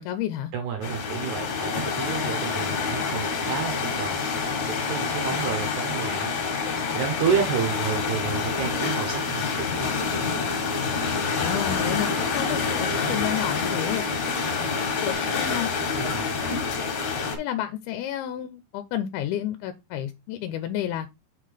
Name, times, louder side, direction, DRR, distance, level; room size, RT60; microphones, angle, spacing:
voice 1, 0.0-0.5 5.3-5.5 11.4-14.3 15.0-15.7 17.4-21.1, left 11 dB, 80° left, 2.5 m, -31 dB
voice 2, 0.5-4.2 4.7-6.4 6.9-9.9 16.0-16.5, right 7 dB, 70° right, 1.9 m, -30 dB
sound 1, 0.8-17.4, left 5 dB, 55° left, 2.5 m, -27 dB
Acoustic guitar, 7.1-15.1, equal, 10° right, 0.8 m, -46 dB
6.6 x 3.8 x 5.0 m
omnidirectional pair, 4.6 m